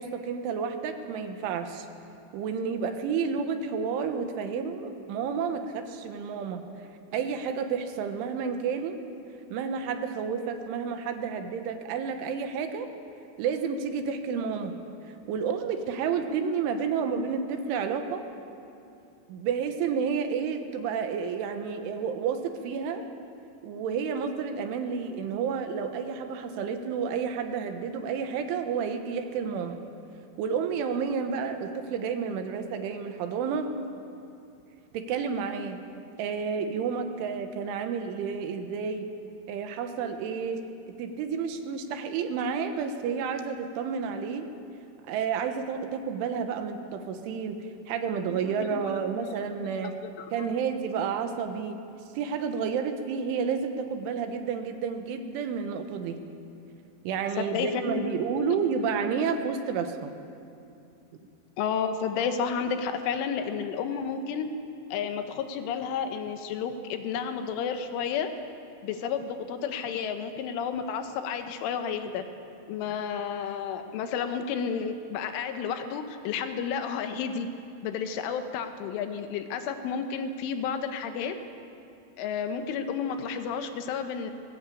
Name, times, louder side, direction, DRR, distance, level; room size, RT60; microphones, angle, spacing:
voice 1, 0.0-1.9 2.3-6.6 7.1-9.0 9.5-12.9 13.4-14.8 15.3-18.3 19.3-23.0 23.6-29.8 30.4-33.7 34.9-35.8 36.2-39.1 39.5-40.7 41.0-44.5 45.1-49.9 50.3-51.8 52.1-56.2 57.1-60.1, right 6 dB, 75° right, 6 dB, 3.6 m, -30 dB
voice 2, 48.3-49.3 49.8-49.9 50.2-50.5 57.4-58.5 61.6-64.5 64.9-68.3 68.8-72.2 72.7-77.5 77.8-81.4 82.2-84.3, left 6 dB, 80° left, 7 dB, 3.5 m, -31 dB
20.0 x 17.5 x 8.5 m, 2.6 s
omnidirectional pair, 5.7 m